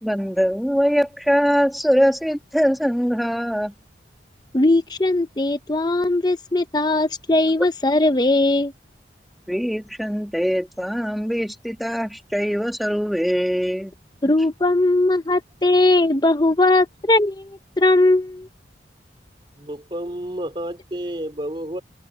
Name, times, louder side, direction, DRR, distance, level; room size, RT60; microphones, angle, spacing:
voice 1, 0.0-3.7 9.5-13.9, equal, ahead, 1.6 m, -22 dB
voice 2, 4.5-8.7 14.2-17.5 17.8-18.5, left 2 dB, 20° left, 0.8 m, -19 dB
voice 3, 19.5-21.8, right 1 dB, 30° right, 2.6 m, -30 dB
head